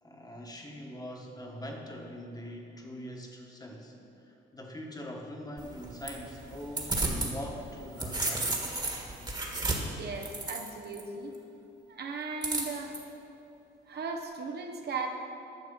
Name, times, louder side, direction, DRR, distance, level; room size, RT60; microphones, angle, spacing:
voice 1, 0.0-4.0 4.2-8.8, equal, 20° left, 0 dB, 1.4 m, -43 dB
sound 1, 5.6-7.3 7.7-11.0 12.4-13.0, right 2 dB, 20° right, 1.6 m, -33 dB
voice 2, 10.0-11.3 11.9-12.9 13.9-15.1, right 4 dB, 55° right, 3 dB, 1.0 m, -37 dB
10.5 x 6.6 x 5.4 m, 2.8 s
cardioid pair, 90°, 20 cm